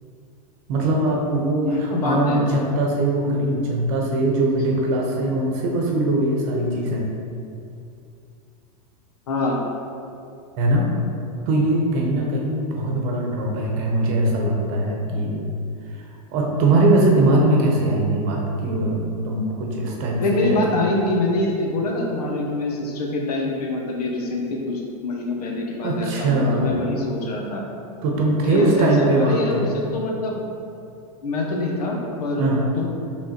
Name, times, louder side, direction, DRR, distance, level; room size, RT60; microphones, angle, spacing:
voice 1, 0.7-7.1 10.6-10.9 11.5-15.4 16.3-20.8 25.8-26.8 28.0-29.7 32.4-32.7, right 2 dB, 45° right, -1 dB, 0.9 m, -21 dB
voice 2, 1.6-2.4 9.3-9.6 20.2-27.6 28.5-30.4 31.2-32.5 32.8-32.9, left 2 dB, 80° left, -1 dB, 0.8 m, -25 dB
5.3 x 3.3 x 2.9 m, 2.6 s
supercardioid pair, 135°, 20 cm